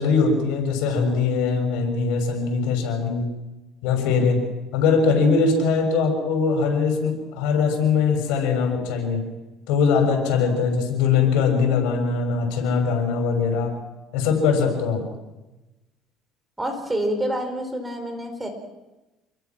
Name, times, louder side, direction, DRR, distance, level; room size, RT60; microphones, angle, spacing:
voice 1, 0.0-3.3 3.8-9.3 9.7-13.8 14.1-15.1, left 5 dB, 85° left, 3 dB, 6.9 m, -21 dB
voice 2, 16.6-18.5, equal, 10° right, 6 dB, 4.7 m, -27 dB
28.5 x 22.0 x 6.2 m, 1.0 s
cardioid pair, 125°, 0 cm